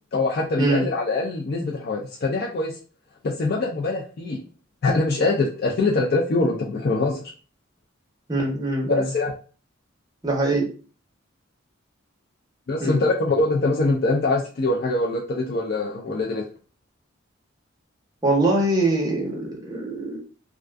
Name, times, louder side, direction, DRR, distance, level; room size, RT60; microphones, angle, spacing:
voice 1, 0.1-2.8 3.2-4.4 4.8-7.3 8.9-9.3 12.7-16.4, left 2 dB, 50° left, -2 dB, 0.4 m, -23 dB
voice 2, 8.3-9.1 10.2-10.7 12.8-13.0 18.2-20.2, right 2 dB, 20° right, -1 dB, 0.7 m, -23 dB
2.4 x 2.3 x 2.3 m, 0.37 s
head